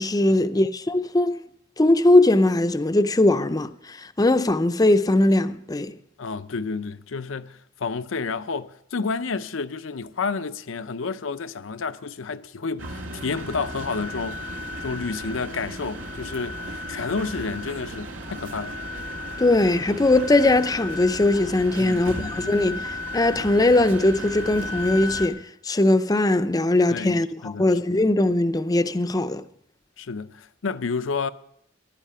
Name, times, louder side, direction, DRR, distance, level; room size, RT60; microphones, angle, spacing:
voice 1, 0.0-1.4 1.8-6.0 19.4-29.4, left 2 dB, 20° left, 0.6 m, -20 dB
voice 2, 6.2-14.5 14.8-16.6 16.9-18.7 21.8-22.6 26.9-27.7 30.0-31.3, left 4 dB, 80° left, 0.6 m, -30 dB
sound 1, 12.8-25.3, left 1 dB, 85° right, 2.1 m, -34 dB
15.0 x 12.0 x 5.6 m
head